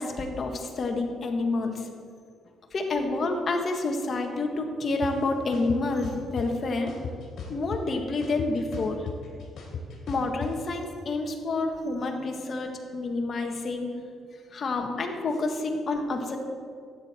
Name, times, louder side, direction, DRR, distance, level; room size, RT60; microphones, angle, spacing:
voice 1, 0.0-1.9 2.7-6.9 7.5-9.0 10.1-13.9 14.5-16.4, left 3 dB, 45° left, 4 dB, 1.5 m, -28 dB
sound 1, 5.0-5.1 5.5-6.5 6.9-7.9 8.2-10.5, left 5 dB, 65° left, 2.8 m, -36 dB
12.5 x 9.2 x 4.4 m, 2.2 s
cardioid pair, 90°, 0 cm